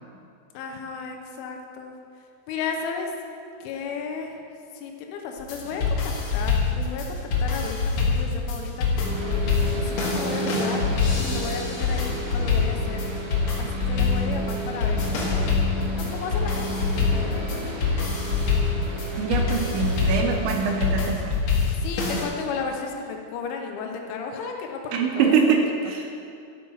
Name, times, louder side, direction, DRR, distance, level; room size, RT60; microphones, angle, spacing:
voice 1, 0.5-1.9 2.5-3.1 3.6-4.4 4.7-10.8 11.1-13.0 13.6-15.8 16.1-18.4 21.8-25.4, left 5 dB, 80° left, 2 dB, 3.2 m, -34 dB
sound 1, 5.4-22.2, left 4 dB, 60° left, 2.8 m, -25 dB
sound 2, 9.0-20.9, right 1 dB, 60° right, 2.4 m, -33 dB
voice 2, 19.2-21.4 24.9-26.1, right 6 dB, 80° right, 2 dB, 2.8 m, -24 dB
12.5 x 6.0 x 5.5 m, 2.5 s
omnidirectional pair, 5.7 m